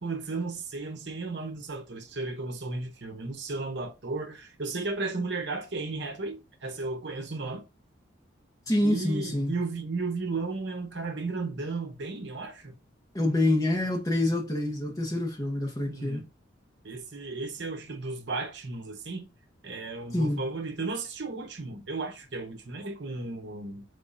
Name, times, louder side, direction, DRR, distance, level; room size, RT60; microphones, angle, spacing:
voice 1, 0.0-7.6 8.8-12.7 15.9-16.2 16.8-19.3 19.6-23.8, right 3 dB, 60° right, 0.8 m, -34 dB
voice 2, 8.7-9.5 13.1-16.2 20.1-20.4, left 1 dB, 20° left, 0.9 m, -26 dB
3.8 x 3.5 x 2.6 m
head